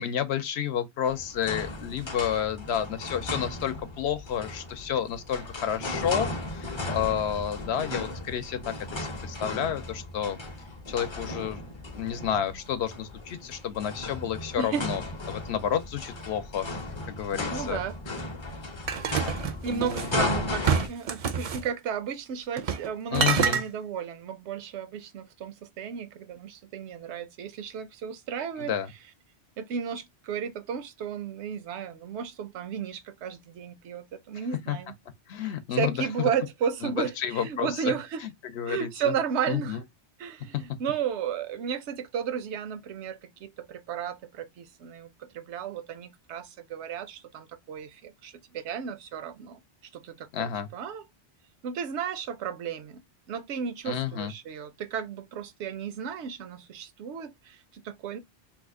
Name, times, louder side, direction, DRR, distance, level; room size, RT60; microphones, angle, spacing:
voice 1, 0.0-10.4 10.9-11.6 11.9-16.7 17.1-18.1 19.7-20.1 23.1-23.6 28.6-28.9 34.7-34.8 35.3-36.3 36.8-39.1 39.5-39.8 40.5-40.6 50.3-50.7 53.9-54.3, left 9 dB, 75° left, 0.9 m, -30 dB
sound 1, 1.1-20.9, left 2 dB, 35° left, 0.6 m, -36 dB
voice 2, 17.5-18.0 19.4-28.7 29.6-34.9 35.7-38.2 38.7-39.8 40.2-49.6 49.9-51.0 51.6-53.0 53.3-58.2, right 7 dB, 90° right, 0.9 m, -34 dB
sound 2, 18.9-20.2 20.6-21.7 22.6-22.9 23.1-23.6, right 7 dB, 60° right, 0.4 m, -27 dB
2.7 x 2.4 x 3.5 m
omnidirectional pair, 1.1 m